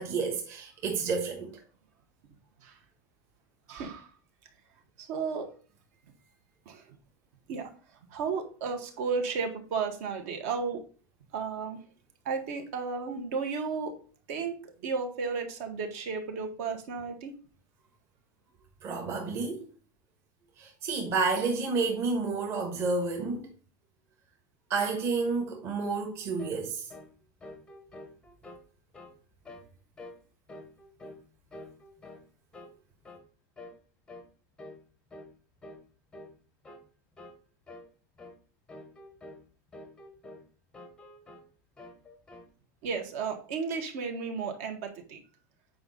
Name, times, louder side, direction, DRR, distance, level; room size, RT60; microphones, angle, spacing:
voice 1, 0.0-1.5 18.8-19.7 20.6-23.5 24.7-26.9, right 4 dB, 30° right, 1.4 m, -30 dB
voice 2, 3.7-4.1 5.0-5.5 6.7-6.8 7.5-7.7 8.1-10.8 11.3-11.8 12.3-14.0 14.3-14.5 14.8-17.3 42.8-45.2, right 5 dB, 55° right, 1.8 m, -33 dB
sound 1, 26.4-26.6 26.9-27.1 27.4-28.6 28.9-29.2 29.4-29.7 30.0-30.2 30.5-31.2 31.5-32.3 32.5-32.8 33.0-33.3 33.6-33.8 34.1-34.3 34.6-34.8 35.1-35.3 35.6-35.8 36.1-36.4 36.6-36.8 37.2-37.4 37.7-37.9 38.2-38.4 38.7-39.4 39.7-40.5 40.7-41.5 41.8-42.5, left 1 dB, 5° left, 0.8 m, -48 dB
8.6 x 4.9 x 4.1 m
supercardioid pair, 180°, 10 cm